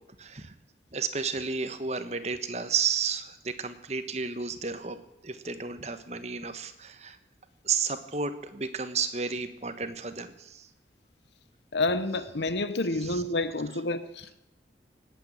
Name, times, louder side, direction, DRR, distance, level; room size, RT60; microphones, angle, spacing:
voice 1, 0.2-0.5 0.9-5.0 5.2-7.2 7.6-10.7 13.0-13.2, right 5 dB, 40° right, 1.3 m, -32 dB
voice 2, 11.7-14.4, left 2 dB, 80° left, 0.9 m, -29 dB
19.0 x 8.8 x 8.6 m
head